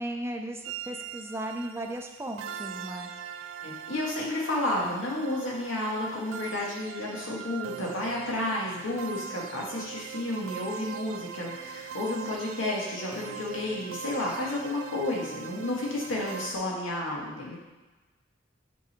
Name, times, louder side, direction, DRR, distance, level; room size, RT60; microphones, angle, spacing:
voice 1, 0.0-3.1, right 1 dB, 15° right, 3 dB, 0.6 m, -36 dB
sound 1, 0.6-16.6, right 8 dB, 80° right, 0.4 m, -41 dB
voice 2, 3.6-17.6, left 1 dB, 90° left, -4 dB, 1.9 m, -31 dB
8.2 x 4.0 x 4.5 m, 1.2 s
head